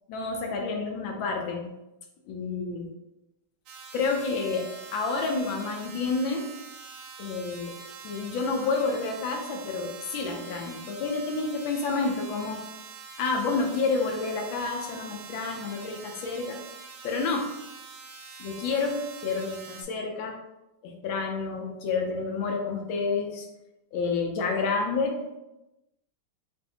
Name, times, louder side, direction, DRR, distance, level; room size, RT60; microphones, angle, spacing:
voice 1, 0.1-1.7 2.3-2.9 3.9-6.5 7.2-7.8 8.0-12.6 13.2-16.6 17.0-17.5 18.4-20.4 20.8-23.5 23.9-25.2, left 4 dB, 75° left, 2 dB, 1.2 m, -29 dB
sound 1, 3.7-19.8, right 5 dB, 75° right, 1.4 m, -45 dB
5.2 x 2.6 x 2.8 m, 0.95 s
omnidirectional pair, 2.4 m